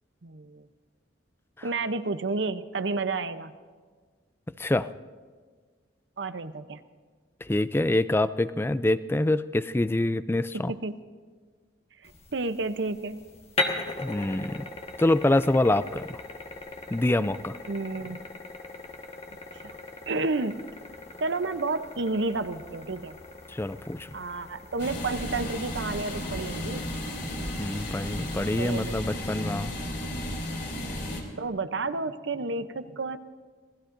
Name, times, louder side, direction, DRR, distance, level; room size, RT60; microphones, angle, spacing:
voice 1, 0.2-0.7 1.6-3.5 6.2-6.8 10.5-11.0 12.0-13.2 17.7-18.2 19.5-19.8 20.1-20.6 21.2-23.2 24.1-26.8 28.6-29.0 31.4-33.2, right 3 dB, 70° right, 11 dB, 0.7 m, -31 dB
voice 2, 7.4-10.7 14.0-14.6 15.0-16.2 16.9-17.6 23.5-24.1 27.6-29.7, left 1 dB, 10° left, 14 dB, 0.3 m, -25 dB
sound 1, 12.0-29.0, left 2 dB, 35° left, 1.5 m, -39 dB
sound 2, 24.8-31.2, left 1 dB, 60° left, 3.4 m, -34 dB
27.0 x 19.0 x 2.6 m, 1.5 s
head